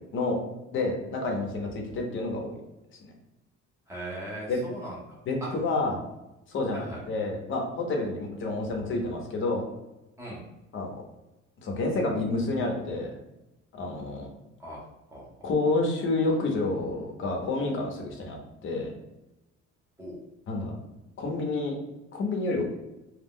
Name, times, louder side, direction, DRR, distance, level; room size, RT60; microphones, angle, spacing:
voice 1, 0.7-2.5 3.0-3.1 4.5-4.6 5.3-6.0 6.5-9.6 10.7-11.0 11.6-13.1 13.7-14.3 15.4-18.9 20.5-20.7 21.2-21.7 22.1-22.6, left 2 dB, 40° left, 1 dB, 0.6 m, -29 dB
voice 2, 3.9-5.5 6.7-7.0 10.2-10.4 14.6-14.8 15.1-15.5 20.0-20.2, right 1 dB, 10° right, -5 dB, 0.6 m, -39 dB
2.3 x 2.0 x 3.5 m, 0.97 s
cardioid pair, 175°, 30 cm